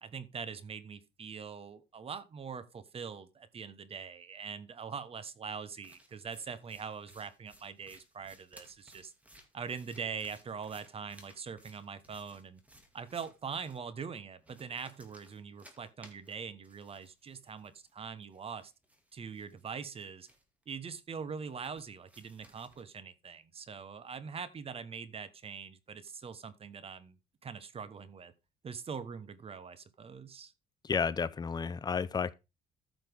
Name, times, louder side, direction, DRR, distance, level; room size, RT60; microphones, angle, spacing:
voice 1, 0.0-9.1 9.5-12.6 12.9-18.7 19.1-20.3 20.7-27.2 27.4-28.3 28.6-30.5, right 6 dB, 35° right, 1.2 m, -43 dB
sound 1, 5.7-13.8 14.4-17.9 18.2-20.6 21.4-22.8, equal, 10° right, 2.4 m, -61 dB
voice 2, 30.8-32.3, left 6 dB, 25° left, 0.6 m, -32 dB
14.0 x 5.9 x 3.6 m
cardioid pair, 110°, 17 cm